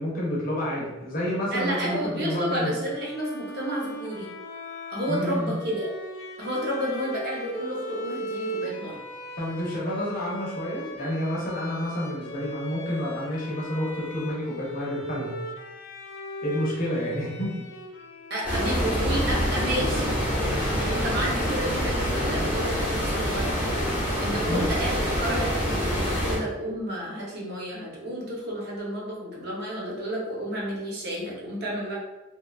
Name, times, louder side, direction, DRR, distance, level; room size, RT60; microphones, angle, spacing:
voice 1, 0.0-2.8 5.1-5.5 9.4-15.3 16.4-17.5 24.4-24.6, equal, 40° left, -4 dB, 0.7 m, -29 dB
voice 2, 1.5-4.3 4.9-5.9 6.4-9.0 18.3-20.2 20.8-32.0, equal, 50° right, -4 dB, 0.7 m, -31 dB
Bowed string instrument, 2.8-20.7, equal, 70° left, 0.3 m, -39 dB
sound 1, 18.4-26.4, equal, 5° right, 0.8 m, -26 dB
3.0 x 2.2 x 2.3 m, 1.1 s
head